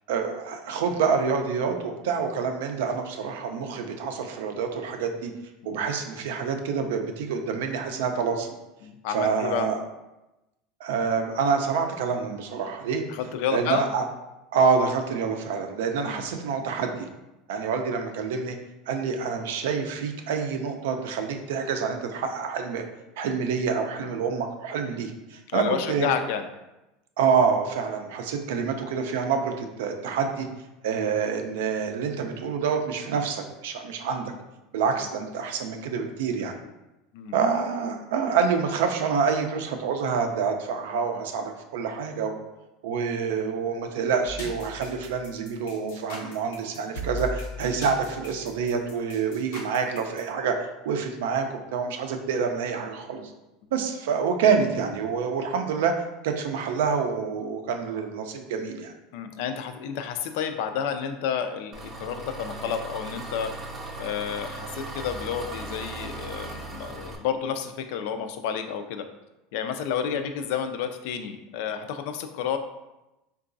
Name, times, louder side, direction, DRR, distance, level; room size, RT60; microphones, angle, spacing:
voice 1, 0.1-5.3 5.6-8.5 9.1-9.8 10.8-13.0 13.5-14.0 14.5-17.1 17.5-18.6 18.9-22.8 23.2-26.1 27.2-30.5 30.8-34.3 34.7-36.6 37.3-42.3 42.8-53.2 53.7-55.9 56.2-58.9, right 6 dB, 85° right, 5 dB, 0.4 m, -27 dB
voice 2, 8.8-9.7 13.1-13.9 16.0-16.3 25.5-26.5 37.1-37.3 59.1-63.5 64.0-69.0 69.5-72.6, left 7 dB, 70° left, 8 dB, 0.3 m, -30 dB
sound 1, 44.3-50.2, left 1 dB, 90° left, 0.8 m, -38 dB
Engine, 61.7-67.2, right 2 dB, 25° right, 0.6 m, -38 dB
3.7 x 2.3 x 2.5 m, 0.97 s
supercardioid pair, 135°, 0 cm